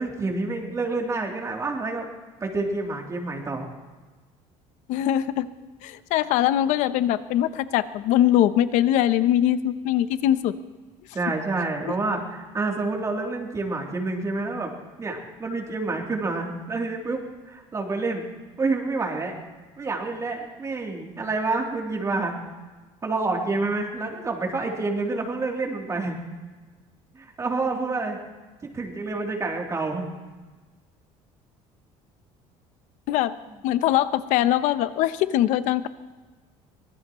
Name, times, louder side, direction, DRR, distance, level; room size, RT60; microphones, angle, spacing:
voice 1, 0.0-2.1 2.4-3.7 11.1-14.7 15.0-18.3 18.6-19.3 19.8-22.3 23.0-26.2 27.1-28.2 28.6-30.1, right 3 dB, 25° right, 0 dB, 3.2 m, -28 dB
voice 2, 4.9-5.5 5.8-10.5 33.1-33.3 33.6-35.9, left 12 dB, 75° left, 13 dB, 0.8 m, -22 dB
24.5 x 19.0 x 3.1 m, 1.3 s
cardioid pair, 125°, 13 cm